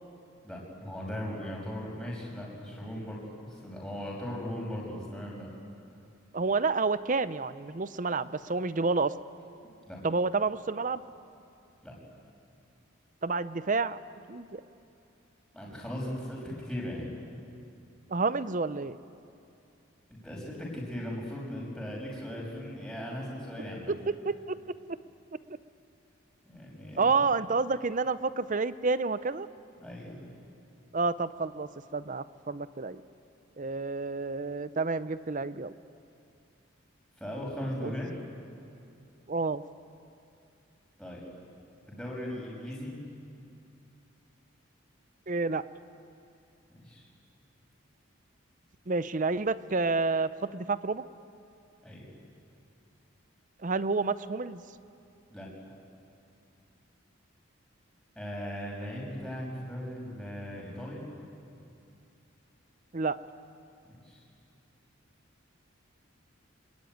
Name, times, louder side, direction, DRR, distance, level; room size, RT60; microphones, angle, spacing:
voice 1, 0.4-5.5 9.8-10.0 11.8-11.9 15.5-17.1 20.1-23.9 26.4-27.1 29.8-30.2 37.2-38.1 41.0-41.2 41.9-43.0 46.7-47.0 51.8-52.1 55.3-55.5 58.2-61.0 64.0-64.2, equal, 5° left, -4 dB, 6.0 m, -38 dB
voice 2, 6.3-9.1 10.0-11.0 13.2-14.0 14.3-14.6 18.1-19.0 23.9-24.6 24.9-25.0 27.0-29.5 30.9-33.0 33.6-35.7 37.8-37.9 39.3-39.6 45.3-45.6 48.9-51.0 53.6-54.6 62.9-63.2, right 4 dB, 40° right, 15 dB, 0.6 m, -29 dB
25.5 x 21.0 x 9.3 m, 2.6 s
head